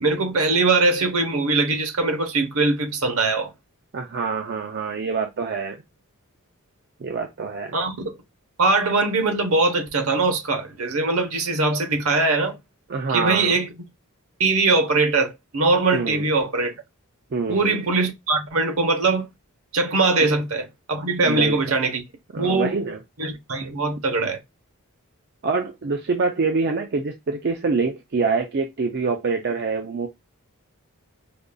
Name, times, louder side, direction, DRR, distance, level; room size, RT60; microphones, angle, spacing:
voice 1, 0.0-3.5 7.7-8.2 8.6-12.6 13.1-13.7 14.4-16.7 17.5-19.3 19.7-22.0 22.4-22.7 23.2-24.4, right 3 dB, 70° right, 1.0 m, -21 dB
voice 2, 3.9-5.8 7.0-7.7 12.9-13.6 15.9-16.3 17.3-17.8 20.2-20.3 21.2-21.6 22.3-23.0 25.4-30.1, right 4 dB, 50° right, 0.5 m, -25 dB
5.1 x 2.5 x 2.2 m
head